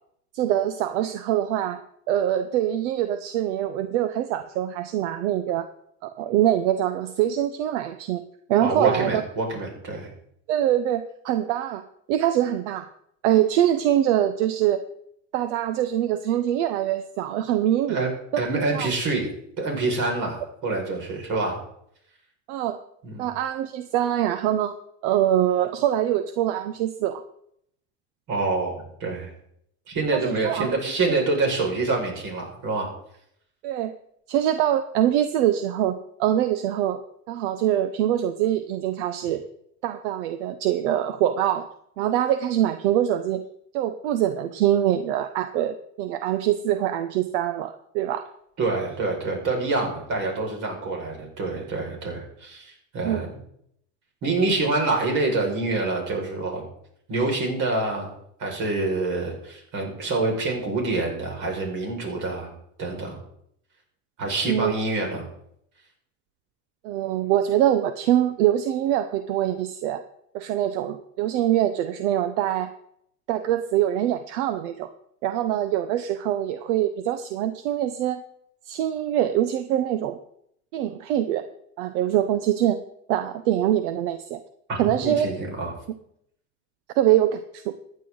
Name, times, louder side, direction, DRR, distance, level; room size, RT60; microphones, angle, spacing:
voice 1, 0.3-1.8 2.1-5.7 6.0-8.2 8.5-9.2 10.5-11.8 12.1-12.9 13.2-14.8 15.3-18.0 18.3-18.4 18.7-18.9 22.5-22.8 23.2-24.7 25.0-27.2 30.1-30.7 33.6-33.9 34.3-37.0 37.3-39.4 39.8-41.7 42.0-43.4 43.7-48.2 53.0-53.2 64.5-64.7 66.8-70.0 70.3-72.7 73.3-74.9 75.2-78.2 78.7-80.2 80.7-81.4 81.8-82.8 83.1-84.4 84.8-85.3 87.0-87.7, right 11 dB, 80° right, 10 dB, 0.9 m, -24 dB
voice 2, 8.6-10.1 17.9-19.3 19.6-21.6 23.0-23.3 28.3-29.3 29.9-32.9 48.6-53.3 54.2-56.6 57.1-58.1 58.4-63.2 64.2-65.3 84.7-85.7, right 3 dB, 55° right, 1 dB, 5.6 m, -26 dB
15.0 x 9.6 x 3.9 m, 0.71 s
supercardioid pair, 100°, 36 cm